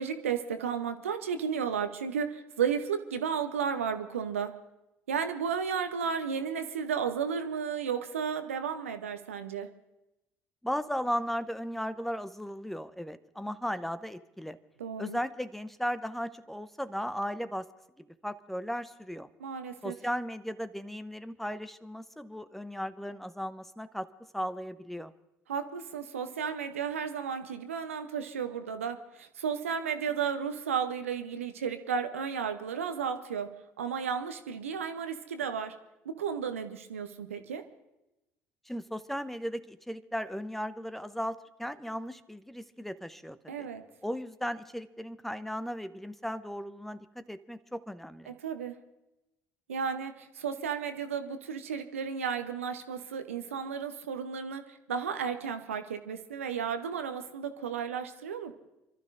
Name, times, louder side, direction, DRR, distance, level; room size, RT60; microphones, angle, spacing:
voice 1, 0.0-4.5 5.1-9.7 14.8-15.2 19.4-19.9 25.5-33.5 33.8-35.7 36.0-37.6 43.5-43.8 48.3-48.8 49.7-58.5, right 7 dB, 75° right, 8 dB, 0.8 m, -33 dB
voice 2, 10.6-14.6 15.0-17.7 18.2-19.3 19.8-24.1 24.3-25.1 38.7-43.7 44.0-48.3, equal, 5° left, 13 dB, 0.7 m, -36 dB
29.5 x 12.5 x 2.5 m, 0.95 s
figure-of-eight pair, 55°, 7 cm